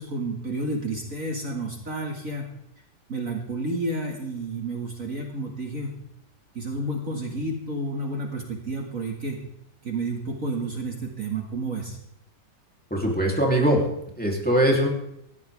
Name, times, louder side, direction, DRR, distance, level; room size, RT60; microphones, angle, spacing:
voice 1, 0.0-2.5 3.1-5.9 6.5-9.4 9.8-12.0, right 2 dB, 45° right, 0 dB, 2.8 m, -30 dB
voice 2, 12.9-13.8 14.2-14.9, right 1 dB, 5° left, -1 dB, 3.5 m, -21 dB
19.5 x 15.0 x 3.7 m, 0.79 s
omnidirectional pair, 2.1 m